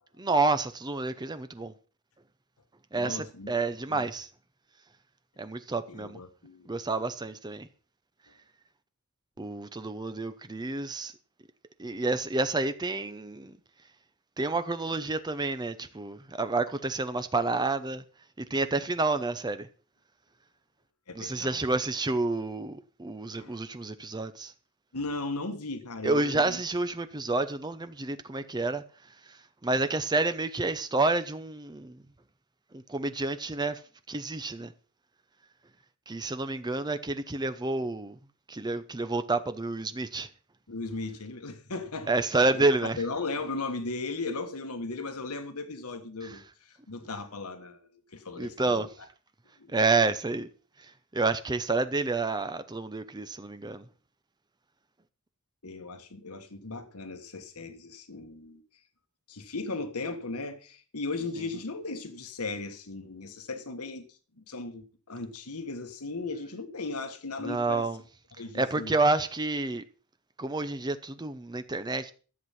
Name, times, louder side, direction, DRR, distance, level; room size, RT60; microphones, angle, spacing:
voice 1, 0.2-1.7 2.9-4.3 5.4-6.2 6.7-7.7 9.4-11.1 11.8-13.5 14.4-18.0 18.4-19.7 21.2-24.5 26.0-28.8 29.2-32.0 32.7-33.8 34.1-34.7 36.1-38.2 38.5-40.3 42.1-43.0 46.2-46.4 48.4-48.9 49.7-50.5 50.8-53.8 67.4-68.0 68.5-69.8 70.4-72.1, right 3 dB, 20° right, 0.6 m, -29 dB
voice 2, 3.0-3.5 3.9-4.1 5.9-6.7 21.1-21.6 23.4-23.6 24.9-26.6 40.7-48.9 49.6-49.8 55.6-58.6 59.3-67.9 68.4-68.9, left 3 dB, 80° left, 1.6 m, -37 dB
13.5 x 8.0 x 5.9 m
head